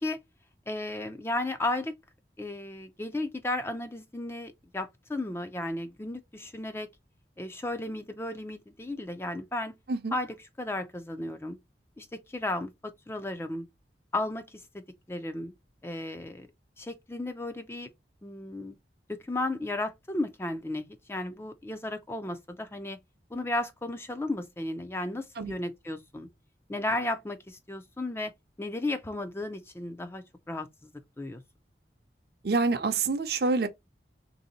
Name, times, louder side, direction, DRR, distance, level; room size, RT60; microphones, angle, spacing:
voice 1, 0.7-2.0 2.4-6.9 7.4-9.8 10.1-11.6 12.0-13.7 14.1-14.8 15.1-15.5 15.8-16.5 16.8-17.9 18.2-18.8 19.1-23.0 23.3-26.3 26.7-28.3 28.6-30.9 31.2-31.4, left 2 dB, 15° left, 0.4 m, -34 dB
voice 2, 32.4-33.7, right 3 dB, 60° right, 0.6 m, -27 dB
3.6 x 2.7 x 3.9 m
head